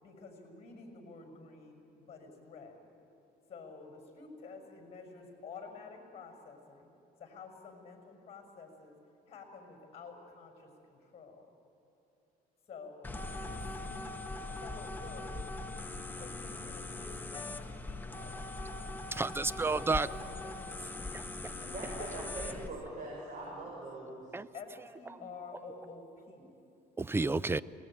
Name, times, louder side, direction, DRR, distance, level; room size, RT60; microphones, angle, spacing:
voice 1, 0.0-2.8 3.5-6.9 7.2-8.9 9.3-11.5 12.7-14.2 14.5-15.5 16.1-18.4 19.9-20.5 21.4-22.1 24.5-26.5, left 4 dB, 40° left, 6.4 m, -50 dB
sound 1, 13.0-22.7, left 2 dB, 10° left, 1.2 m, -41 dB
voice 2, 19.1-20.1 21.1-21.5 24.3-24.5 27.0-27.6, right 3 dB, 15° right, 0.5 m, -31 dB
voice 3, 21.7-24.3, right 2 dB, 50° right, 6.7 m, -42 dB
27.0 x 20.0 x 9.2 m
cardioid pair, 110°, 17 cm